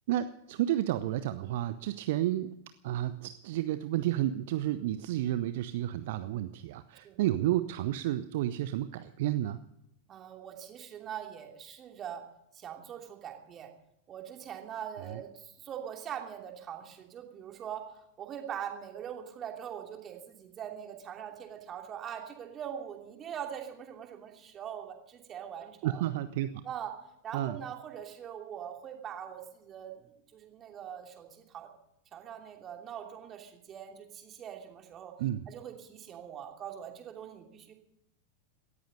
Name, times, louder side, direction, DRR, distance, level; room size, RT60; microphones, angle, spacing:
voice 1, 0.1-2.5 2.8-9.6 25.8-26.6 27.3-27.6 35.2-35.5, right 13 dB, 50° right, 13 dB, 0.7 m, -31 dB
voice 2, 10.1-12.2 12.5-13.7 14.1-17.9 18.2-26.1 26.6-26.9 27.2-31.7 32.1-35.1 35.5-37.7, right 9 dB, 30° right, 3 dB, 2.9 m, -42 dB
18.0 x 14.0 x 5.4 m, 0.81 s
figure-of-eight pair, 90°, 0 cm